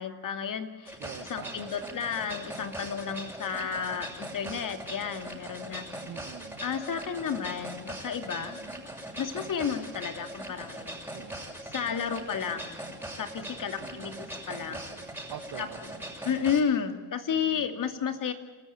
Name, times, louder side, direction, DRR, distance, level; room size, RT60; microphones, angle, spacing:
voice 1, 0.0-5.9 6.6-8.6 9.2-11.0 11.6-12.8 13.2-14.9 15.6-15.7 16.2-18.3, left 7 dB, 60° left, 8 dB, 2.6 m, -32 dB
sound 1, 0.9-16.6, right 1 dB, 5° right, 6.5 m, -41 dB
voice 2, 1.0-1.8 6.1-6.6 8.4-8.8 11.1-11.4 13.8-14.3 14.7-16.1 17.3-17.7, right 11 dB, 75° right, 11 dB, 1.8 m, -46 dB
29.0 x 13.5 x 8.7 m, 1.3 s
cardioid pair, 70°, 36 cm